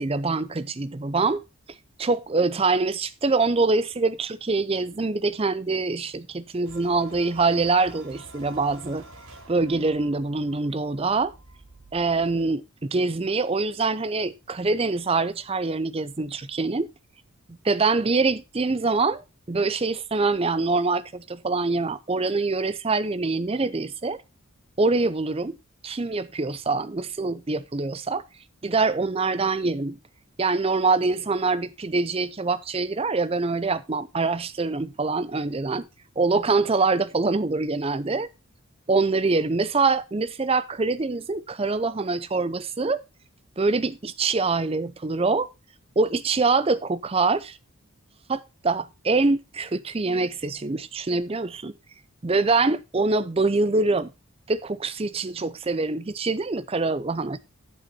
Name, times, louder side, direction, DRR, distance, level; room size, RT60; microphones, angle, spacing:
voice 1, 0.0-1.4 2.0-9.0 9.5-11.3 11.9-16.9 17.6-24.2 24.8-25.6 25.8-28.2 28.6-30.0 30.4-35.9 36.2-38.3 38.9-43.0 43.6-45.5 46.0-47.6 48.3-51.7 52.2-54.1 54.5-57.4, right 3 dB, 25° right, 0.5 m, -24 dB
sound 1, 6.6-12.5, right 1 dB, 90° right, 4.0 m, -49 dB
8.9 x 7.9 x 4.2 m
head